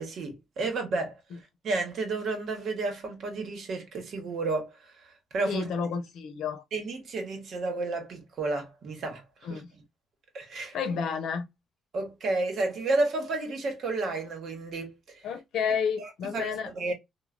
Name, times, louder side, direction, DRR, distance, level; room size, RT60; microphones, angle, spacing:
voice 1, 0.0-1.2 1.6-5.7 6.7-9.2 9.5-9.6 10.3-10.8 11.9-15.2 16.0-16.9, right 3 dB, 65° right, 1.1 m, -31 dB
voice 2, 5.5-6.6 9.4-9.7 10.7-11.5 15.2-16.7, left 6 dB, 75° left, 0.7 m, -31 dB
3.1 x 2.2 x 2.3 m
cardioid pair, 90°, 0 cm